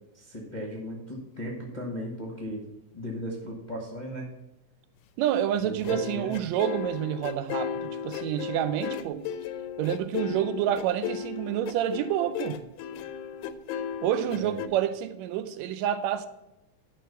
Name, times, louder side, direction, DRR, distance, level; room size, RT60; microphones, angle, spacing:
voice 1, 0.1-2.6 2.9-4.3 5.6-6.3 14.3-14.6, equal, 35° left, 0.6 m, -36 dB
voice 2, 5.2-9.2 9.8-12.6 14.0-16.3, right 11 dB, 75° right, 1.8 m, -28 dB
sound 1, 5.8-14.7, left 8 dB, 90° left, 2.1 m, -35 dB
11.0 x 3.9 x 6.8 m
omnidirectional pair, 3.5 m